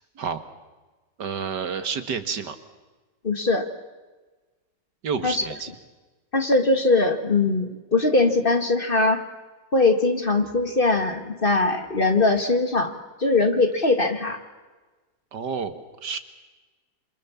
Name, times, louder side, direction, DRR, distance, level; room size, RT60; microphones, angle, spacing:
voice 1, 1.2-2.6 5.0-5.7 15.3-16.2, right 6 dB, 70° right, 10 dB, 2.2 m, -29 dB
voice 2, 3.2-3.7 5.2-5.4 6.3-9.2 9.7-12.9 13.2-14.4, left 3 dB, 30° left, 7 dB, 2.1 m, -21 dB
28.0 x 27.5 x 7.3 m, 1.2 s
omnidirectional pair, 1.9 m